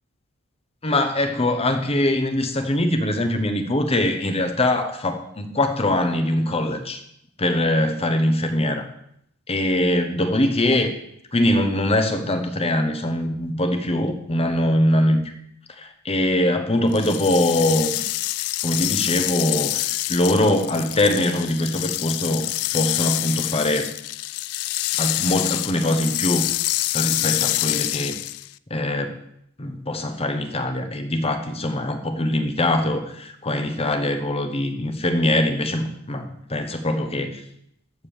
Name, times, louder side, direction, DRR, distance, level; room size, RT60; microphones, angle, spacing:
voice 1, 0.8-7.0 7.4-8.9 9.5-10.9 11.3-15.3 15.7-18.0 18.6-22.5 22.7-23.9 25.0-26.5 26.9-28.2 28.7-29.2 29.6-37.4, left 1 dB, 25° left, 7 dB, 1.1 m, -22 dB
sound 1, 16.9-28.5, left 18 dB, 70° left, 0.4 m, -26 dB
14.5 x 5.3 x 7.2 m, 0.72 s
head